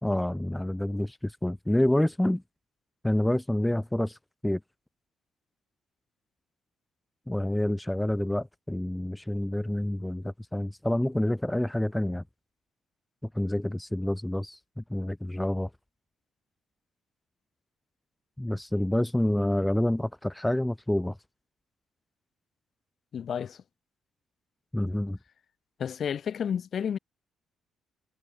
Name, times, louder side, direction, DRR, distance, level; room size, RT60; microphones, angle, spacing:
voice 1, 0.0-2.4 3.0-4.2 4.4-4.6 7.3-12.2 13.3-15.7 18.4-21.2 24.7-25.2, left 1 dB, 5° left, 3.3 m, -28 dB
voice 2, 23.1-23.6 25.8-27.0, left 8 dB, 55° left, 7.4 m, -31 dB
cardioid pair, 90°, 0 cm